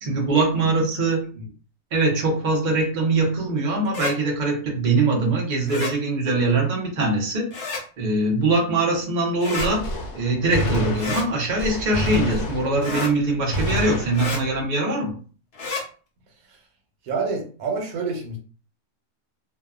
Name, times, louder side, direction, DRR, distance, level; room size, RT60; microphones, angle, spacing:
voice 1, 0.0-1.3 1.9-7.5 8.0-9.9 10.1-15.1, right 2 dB, 40° right, -1 dB, 0.7 m, -22 dB
sound 1, 3.8-4.1 5.7-5.9 7.5-7.8 9.4-9.7 11.0-11.3 12.8-13.1 14.1-14.4 15.5-15.8, left 3 dB, 55° left, 0.9 m, -29 dB
Gunshot gunfire, 9.6-13.1 13.5-14.6, left 1 dB, 80° left, 1.1 m, -29 dB
voice 2, 17.0-18.4, right 4 dB, 90° right, 1 dB, 1.2 m, -28 dB
2.7 x 2.1 x 2.4 m, 0.39 s
omnidirectional pair, 1.5 m